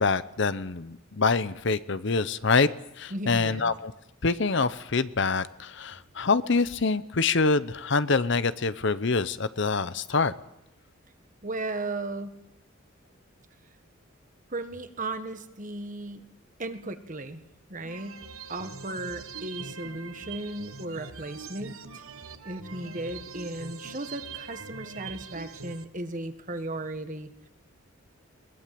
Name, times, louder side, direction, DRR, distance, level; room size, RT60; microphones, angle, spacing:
voice 1, 0.0-2.7 3.0-3.9 4.2-10.3, left 4 dB, 60° left, 15 dB, 0.8 m, -25 dB
voice 2, 3.1-3.7 11.4-12.4 14.5-16.3 16.6-17.4 17.7-18.2 18.5-22.0 22.4-27.5, right 2 dB, 40° right, 9 dB, 1.5 m, -36 dB
sound 1, 17.8-25.8, right 5 dB, 90° right, 1.4 m, -42 dB
22.0 x 21.0 x 7.7 m, 0.86 s
head